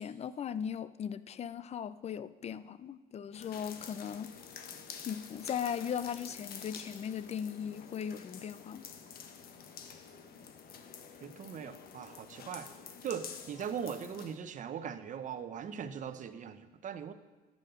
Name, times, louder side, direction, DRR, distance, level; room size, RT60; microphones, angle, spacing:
voice 1, 0.0-4.3 5.0-8.8, left 8 dB, 40° left, 15 dB, 0.5 m, -38 dB
sound 1, 3.3-14.4, left 7 dB, 60° left, 1.2 m, -49 dB
voice 2, 11.2-12.7 13.0-17.1, right 7 dB, 50° right, 11 dB, 0.8 m, -40 dB
10.0 x 8.5 x 6.9 m, 1.2 s
cardioid pair, 110°, 17 cm